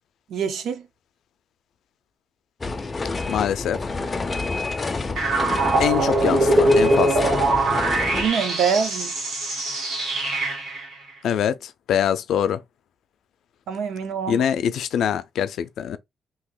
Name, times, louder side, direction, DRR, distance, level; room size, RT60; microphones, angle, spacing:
voice 1, 0.3-0.8 8.1-9.1 13.7-14.4, right 6 dB, 80° right, 0.7 m, -25 dB
sound 1, 2.6-8.3, left 3 dB, 20° left, 0.4 m, -28 dB
voice 2, 3.3-3.8 5.8-7.3 11.2-12.6 14.3-16.0, left 9 dB, 85° left, 0.4 m, -24 dB
sound 2, 5.2-10.9, right 2 dB, 65° right, 1.6 m, -22 dB
2.8 x 2.8 x 3.7 m
wide cardioid pair, 175°, 0 cm